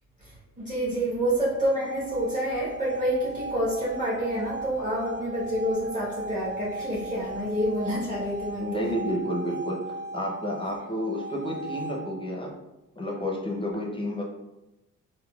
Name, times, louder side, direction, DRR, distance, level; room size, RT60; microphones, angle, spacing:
voice 1, 0.2-8.9, equal, 25° right, -8 dB, 1.1 m, -28 dB
sound 1, 1.5-12.4, right 2 dB, 85° right, 0.7 m, -38 dB
voice 2, 8.6-9.8 10.1-12.5 13.0-14.2, equal, 15° left, -1 dB, 0.5 m, -30 dB
3.7 x 2.1 x 2.2 m, 0.96 s
cardioid pair, 90°, 30 cm